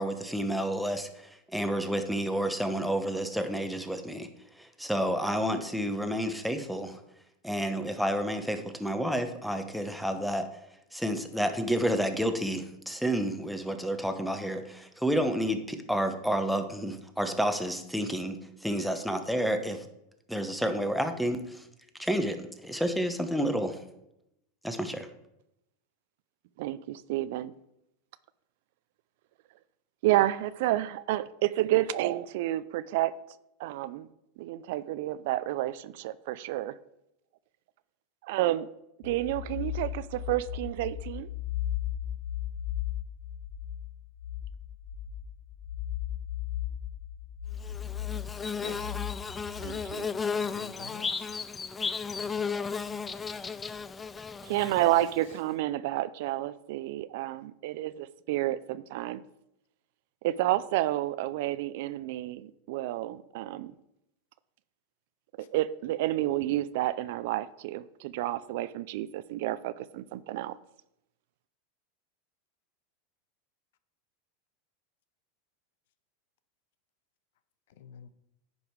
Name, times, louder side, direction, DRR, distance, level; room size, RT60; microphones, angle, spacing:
voice 1, 0.0-4.3 4.6-7.0 7.4-10.5 10.9-19.9 20.3-21.7 22.0-23.8 24.6-25.1, equal, ahead, 1.0 m, -30 dB
voice 2, 26.6-27.5 30.0-33.2 33.6-34.1 34.4-36.7 38.2-38.7 39.0-41.3 49.6-50.1 54.4-59.2 60.2-63.7 65.4-70.6, right 15 dB, 65° right, 0.4 m, -30 dB
sound 1, 39.0-49.9, left 11 dB, 45° left, 1.4 m, -36 dB
Bird / Buzz, 47.6-55.3, left 5 dB, 20° left, 0.4 m, -34 dB
voice 3, 50.3-51.3 54.6-54.7 77.8-78.1, left 8 dB, 75° left, 0.6 m, -46 dB
10.0 x 5.4 x 4.7 m
hypercardioid pair, 115°, 0 cm